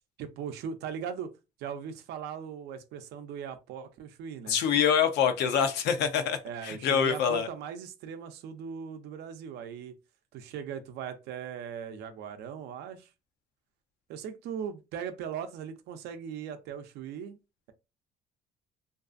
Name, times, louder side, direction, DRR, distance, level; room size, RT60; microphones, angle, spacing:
voice 1, 0.2-1.3 1.6-4.6 6.4-9.9 10.3-13.1 14.1-17.4, right 8 dB, 80° right, 0.5 m, -39 dB
voice 2, 4.5-7.5, left 8 dB, 85° left, 0.6 m, -25 dB
2.6 x 2.3 x 2.5 m
cardioid pair, 110°, 17 cm